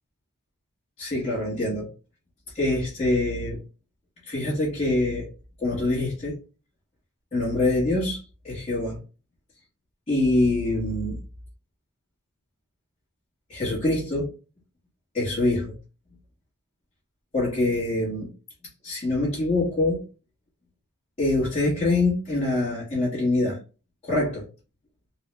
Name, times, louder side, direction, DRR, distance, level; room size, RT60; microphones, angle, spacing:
voice 1, 1.0-1.9 2.5-3.6 4.2-5.3 5.6-6.4 7.3-8.2 8.4-9.0 10.1-11.2 13.5-14.3 15.1-15.7 17.3-18.3 18.8-20.0 21.2-23.6 24.0-24.4, left 2 dB, 30° left, -9 dB, 1.4 m, -24 dB
3.7 x 2.3 x 3.2 m, 0.34 s
head